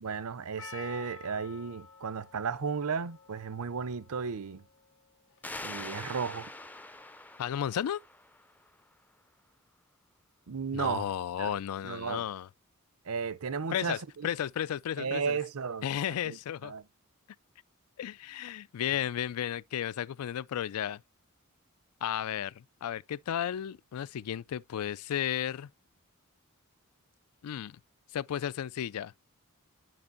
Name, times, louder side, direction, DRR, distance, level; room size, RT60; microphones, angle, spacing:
voice 1, 0.0-4.6 5.6-6.5 10.5-11.1 11.4-11.6 11.8-12.2 13.1-14.3 15.0-15.9 16.3-16.4 16.6-16.8, right 5 dB, 75° right, 0.6 m, -34 dB
Percussion, 0.6-5.8, left 5 dB, 60° left, 1.0 m, -51 dB
sound 1, 5.4-8.8, left 2 dB, 5° left, 0.4 m, -44 dB
voice 2, 7.4-8.0 10.7-12.5 13.7-15.4 15.8-16.7 18.0-21.0 22.0-25.7 27.4-27.8 28.1-29.1, left 10 dB, 85° left, 0.3 m, -34 dB
11.0 x 5.2 x 2.6 m
head